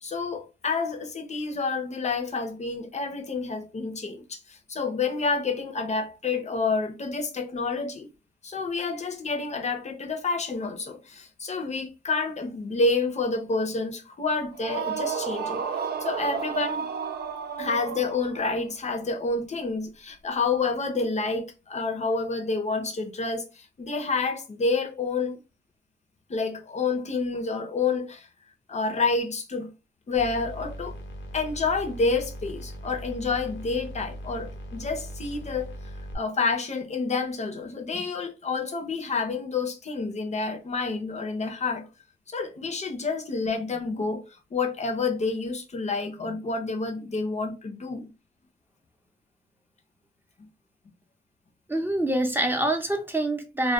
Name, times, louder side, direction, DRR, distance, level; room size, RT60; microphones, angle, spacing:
voice 1, 0.0-8.1 8.4-15.6 16.0-16.9 17.6-25.4 26.3-28.3 28.7-29.7 30.1-31.0 31.3-35.7 36.1-41.9 42.3-44.2 44.5-48.1 50.4-50.5, left 4 dB, 35° left, 0.6 m, -29 dB
sound 1, 14.5-18.5, right 6 dB, 60° right, 0.4 m, -32 dB
sound 2, 30.1-36.2, equal, 85° left, 0.6 m, -39 dB
voice 2, 51.7-53.7, right 1 dB, 10° right, 0.6 m, -25 dB
2.2 x 2.1 x 2.8 m
cardioid pair, 85°, 19 cm